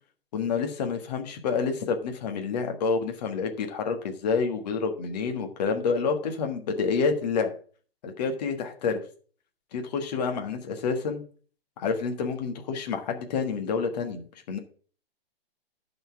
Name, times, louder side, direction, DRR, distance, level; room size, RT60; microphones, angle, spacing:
voice 1, 0.3-7.5 8.0-9.0 9.7-11.2 11.8-14.6, left 5 dB, 40° left, 5 dB, 1.5 m, -28 dB
11.0 x 4.2 x 7.0 m, 0.44 s
figure-of-eight pair, 135°, 31 cm